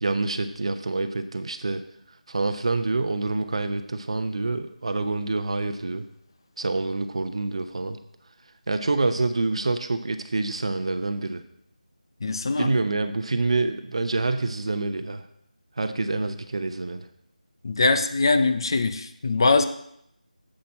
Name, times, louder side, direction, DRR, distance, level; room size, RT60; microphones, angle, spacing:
voice 1, 0.0-1.8 2.3-6.0 6.6-8.0 8.7-11.4 12.6-15.2 15.8-17.1, right 3 dB, 45° right, 9 dB, 0.7 m, -27 dB
voice 2, 12.2-12.7 17.6-19.6, left 3 dB, 35° left, 9 dB, 0.5 m, -22 dB
8.5 x 7.7 x 4.2 m, 0.73 s
figure-of-eight pair, 170°, 4 cm